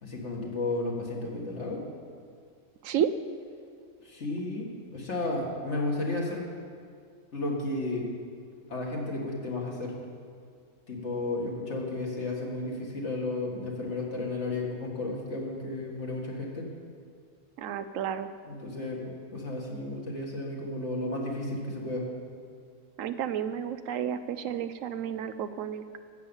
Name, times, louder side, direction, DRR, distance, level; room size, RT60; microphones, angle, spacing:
voice 1, 0.0-1.8 4.0-6.4 7.3-8.0 8.7-9.9 10.9-16.7 18.5-22.0, left 2 dB, 55° left, -2 dB, 2.3 m, -33 dB
voice 2, 17.6-18.3 23.0-26.0, right 9 dB, 75° right, 11 dB, 0.9 m, -31 dB
12.5 x 8.5 x 7.1 m, 2.1 s
omnidirectional pair, 1.4 m